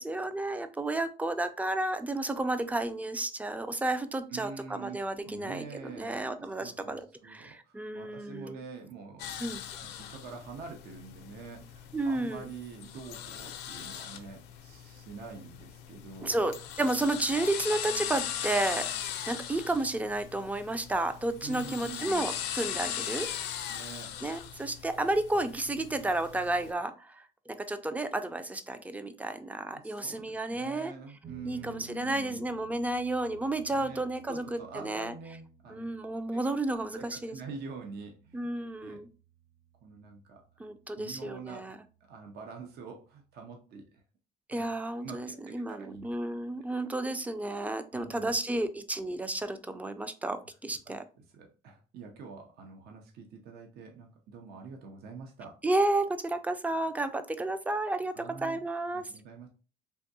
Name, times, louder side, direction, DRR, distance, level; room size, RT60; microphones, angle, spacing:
voice 1, 0.0-8.6 9.4-9.6 11.9-12.5 16.2-18.9 19.3-23.3 24.2-30.9 31.4-35.1 35.7-37.4 38.3-39.1 40.6-41.8 44.5-51.0 55.6-59.0, right 2 dB, 10° right, 10 dB, 0.3 m, -32 dB
voice 2, 4.3-9.4 9.8-16.4 21.4-22.2 23.7-24.2 29.7-32.5 33.7-35.9 36.3-36.5 36.9-38.5 38.8-39.0 39.8-40.4 41.0-41.7 42.1-43.9 44.5-44.6 45.0-46.1 47.9-48.3 50.9-51.0 51.3-55.6 58.1-58.6 59.1-59.5, right 5 dB, 70° right, 3 dB, 0.6 m, -46 dB
sound 1, 9.2-26.7, left 10 dB, 85° left, 0.5 m, -39 dB
sound 2, 31.2-40.3, right 3 dB, 35° right, 0.7 m, -54 dB
3.5 x 2.6 x 2.7 m, 0.35 s
cardioid pair, 110°, 17 cm